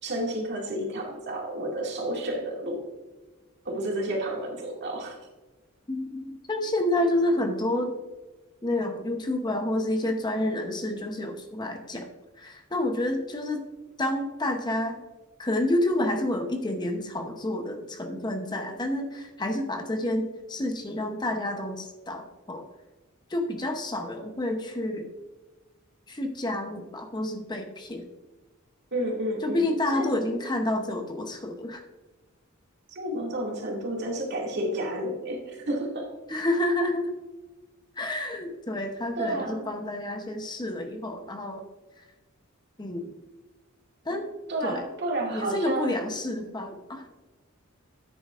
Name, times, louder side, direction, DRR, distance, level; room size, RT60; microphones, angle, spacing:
voice 1, 0.0-2.9 3.6-5.2 28.9-29.7 29.9-30.1 32.9-36.1 39.2-39.7 44.5-46.0, right 1 dB, 55° right, -1 dB, 2.2 m, -31 dB
voice 2, 5.9-7.9 8.6-12.1 12.4-13.7 14.0-15.0 15.4-22.6 23.3-25.1 26.1-28.1 29.4-31.8 36.3-37.1 38.0-41.6 42.8-43.1 44.0-44.3 44.6-44.8 45.3-47.1, left 1 dB, 20° left, 4 dB, 0.8 m, -29 dB
9.9 x 8.7 x 2.5 m, 1.2 s
head